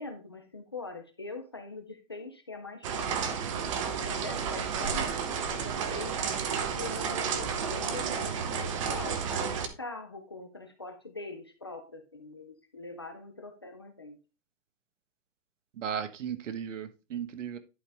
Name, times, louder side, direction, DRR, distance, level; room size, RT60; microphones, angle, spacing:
voice 1, 0.0-3.4 4.1-5.2 5.5-6.2 6.7-14.2, left 3 dB, 25° left, 0.3 m, -42 dB
sound 1, 2.8-9.7, right 6 dB, 25° right, 0.7 m, -32 dB
voice 2, 15.8-17.6, right 8 dB, 75° right, 1.4 m, -36 dB
11.0 x 5.1 x 3.4 m
hypercardioid pair, 175°, 37 cm